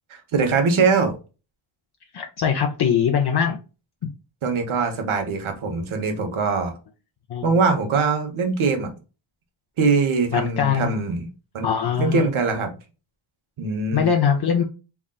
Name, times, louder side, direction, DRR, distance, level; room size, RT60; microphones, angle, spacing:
voice 1, 0.1-1.1 4.4-6.7 7.4-8.9 9.8-11.3 11.5-11.7 12.0-12.7 13.6-14.1, right 4 dB, 90° right, 4 dB, 1.3 m, -22 dB
voice 2, 2.1-3.6 4.0-4.1 7.3-7.6 10.3-11.0 11.6-12.3 13.9-14.6, left 7 dB, 55° left, 2 dB, 0.7 m, -22 dB
3.8 x 3.5 x 2.3 m, 0.31 s
wide cardioid pair, 175°, 47 cm